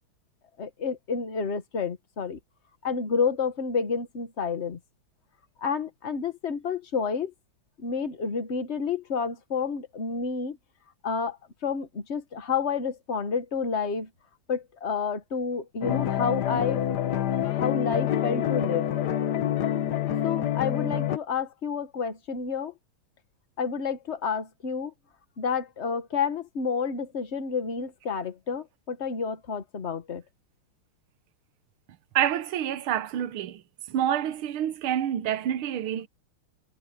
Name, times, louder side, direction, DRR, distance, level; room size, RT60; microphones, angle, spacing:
voice 1, 0.6-2.4 2.8-4.8 5.6-7.3 7.8-10.6 11.0-11.4 11.6-14.1 14.5-17.2 17.5-18.9 20.2-22.7 23.6-24.9 25.4-30.2, left 5 dB, 35° left, 1.6 m, -30 dB
sound 1, 15.8-21.2, left 10 dB, 55° left, 1.4 m, -27 dB
voice 2, 32.1-33.6 33.9-36.1, right 10 dB, 75° right, 1.8 m, -27 dB
omnidirectional pair, 2.3 m